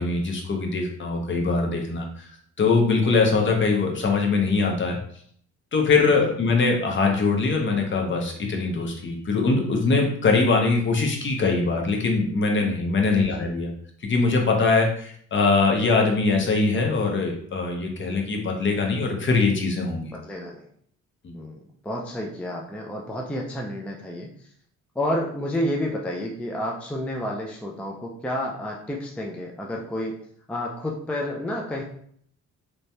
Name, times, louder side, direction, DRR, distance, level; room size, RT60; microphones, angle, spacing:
voice 1, 0.0-2.3 2.6-5.0 5.7-13.7 14.1-20.1 21.2-21.4, left 4 dB, 40° left, 1 dB, 0.7 m, -22 dB
voice 2, 13.1-13.5 20.1-20.7 21.3-24.3 25.0-30.2 30.5-31.8, left 1 dB, 5° left, -1 dB, 0.4 m, -30 dB
3.0 x 2.2 x 2.7 m, 0.62 s
cardioid pair, 90°, 30 cm